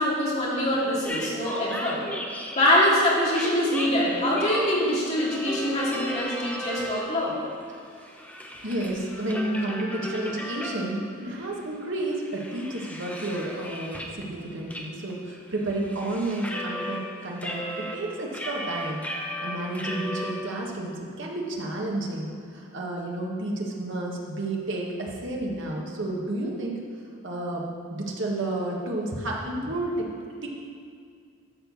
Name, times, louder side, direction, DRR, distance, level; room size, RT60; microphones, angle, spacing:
voice 1, 0.0-2.0 2.5-7.4, left 1 dB, 30° left, -6 dB, 2.5 m, -24 dB
sound 1, 1.0-2.9 3.3-7.3 7.7-11.1 11.5-11.6 12.0-14.2 14.7-14.8 15.1-17.0 17.4-20.3, left 1 dB, 5° left, 0.8 m, -35 dB
voice 2, 8.6-26.8 27.2-30.1 30.4-30.5, right 1 dB, 60° right, -2 dB, 1.6 m, -31 dB
12.5 x 4.5 x 7.1 m, 2.2 s
head